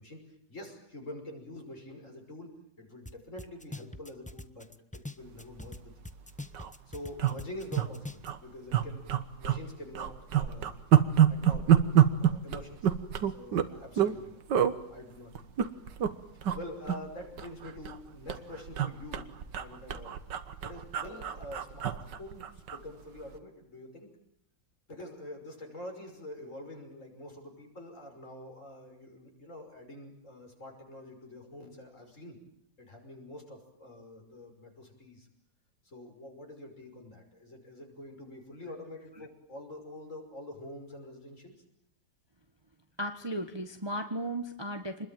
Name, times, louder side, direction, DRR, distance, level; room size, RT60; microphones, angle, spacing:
voice 1, 0.0-2.5 2.8-4.7 4.9-5.9 6.9-9.0 9.3-10.1 10.4-10.8 11.3-11.7 12.2-12.9 13.2-14.4 14.9-15.5 16.3-20.2 20.6-24.1 24.9-32.4 32.8-35.3 35.8-41.5, left 1 dB, 40° left, 3 dB, 6.2 m, -46 dB
sound 1, 3.1-3.2 3.4-5.8 6.1-8.3, left 2 dB, 10° left, 0.5 m, -42 dB
sound 2, 5.7-5.9 6.2-6.3 6.5-6.7 7.2-7.9 8.2-8.4 8.7-9.6 9.9-14.2 14.5-14.7 15.3-16.1 16.4-16.6 16.9-18.0 18.3-22.8 23.2-23.4, right 10 dB, 75° right, 1.9 m, -26 dB
voice 2, 43.0-45.1, right 1 dB, 15° right, 6 dB, 1.3 m, -35 dB
27.0 x 21.5 x 9.2 m, 0.74 s
omnidirectional pair, 1.9 m